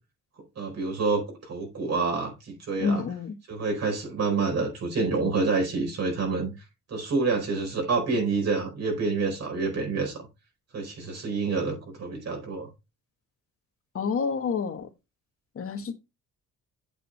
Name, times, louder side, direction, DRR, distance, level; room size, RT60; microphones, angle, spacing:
voice 1, 0.6-3.0 3.5-6.5 6.9-10.3 10.7-12.7, right 4 dB, 55° right, 4.7 m, -28 dB
voice 2, 2.8-3.3 13.9-14.9 15.5-15.9, left 5 dB, 50° left, 1.7 m, -28 dB
8.5 x 6.7 x 3.3 m
cardioid pair, 90°, 30 cm